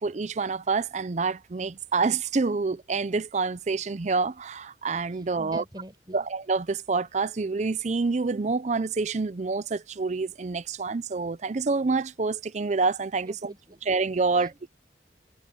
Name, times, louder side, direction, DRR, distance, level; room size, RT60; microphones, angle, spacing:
voice 1, 0.0-5.6 6.1-13.5 13.9-14.5, right 4 dB, 40° right, 0.5 m, -27 dB
voice 2, 5.1-6.2 13.2-13.8 14.3-14.7, right 1 dB, 25° right, 4.8 m, -44 dB
head